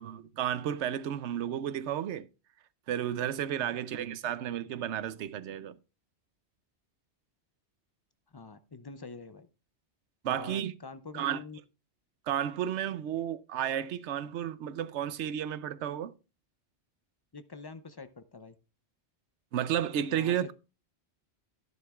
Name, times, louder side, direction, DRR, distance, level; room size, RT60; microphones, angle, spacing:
voice 1, 0.0-2.3 2.9-5.8 10.2-10.7 11.1-11.4 12.3-16.1 19.5-20.5, right 10 dB, 80° right, 0.9 m, -32 dB
voice 2, 8.3-9.5 10.3-11.6 17.3-18.6 20.1-20.4, left 4 dB, 40° left, 0.3 m, -46 dB
11.0 x 10.5 x 2.3 m
omnidirectional pair, 1.2 m